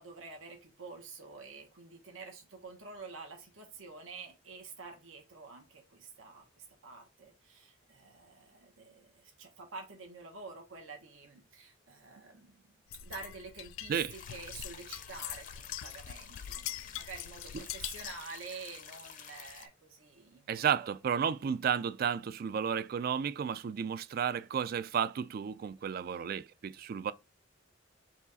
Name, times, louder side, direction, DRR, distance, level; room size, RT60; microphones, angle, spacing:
voice 1, 0.0-12.7 13.0-21.0, right 4 dB, 90° right, 1.2 m, -48 dB
sound 1, 12.9-18.3, left 11 dB, 85° left, 0.3 m, -43 dB
sound 2, 14.1-19.7, left 8 dB, 40° left, 0.6 m, -50 dB
voice 2, 20.5-27.1, right 7 dB, 50° right, 0.3 m, -32 dB
4.9 x 2.4 x 3.9 m
head